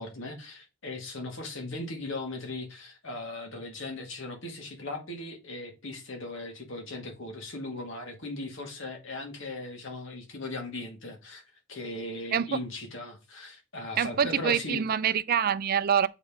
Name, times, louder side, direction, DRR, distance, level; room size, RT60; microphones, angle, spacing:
voice 1, 0.0-11.4 11.7-14.8, left 2 dB, 70° left, 2.0 m, -38 dB
voice 2, 14.0-16.1, right 8 dB, 50° right, 0.4 m, -25 dB
7.9 x 4.3 x 3.6 m
head